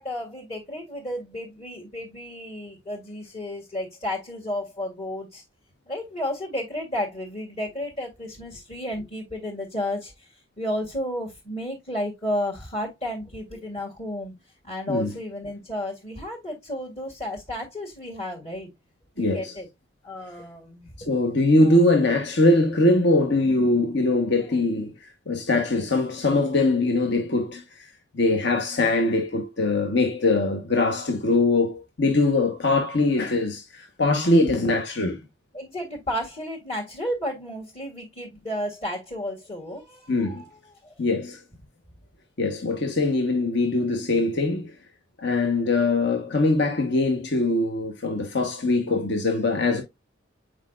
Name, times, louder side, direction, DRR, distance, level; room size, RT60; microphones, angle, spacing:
voice 1, 0.0-5.4 5.9-14.3 14.6-18.7 19.2-19.7 20.0-21.1 35.5-40.5 40.8-40.9, left 1 dB, 35° left, 1.9 m, -32 dB
voice 2, 19.2-19.5 21.1-24.9 25.3-27.9 28.1-35.2 40.1-40.5 41.0-41.4 42.4-44.7 45.2-49.8, left 2 dB, 60° left, 1.1 m, -22 dB
8.1 x 4.9 x 2.4 m
head